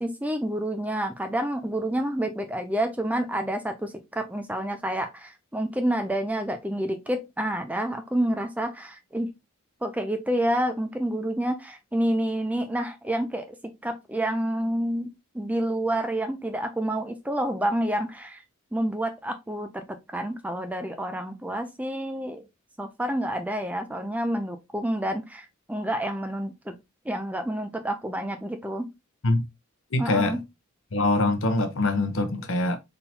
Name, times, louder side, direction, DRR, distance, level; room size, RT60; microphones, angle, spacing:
voice 1, 0.0-9.3 9.8-18.4 18.7-22.4 22.8-26.8 27.1-28.9 30.0-30.4, right 1 dB, 5° right, 0.5 m, -29 dB
voice 2, 29.9-30.4 30.9-32.8, left 2 dB, 60° left, 0.9 m, -24 dB
4.3 x 3.8 x 2.7 m
head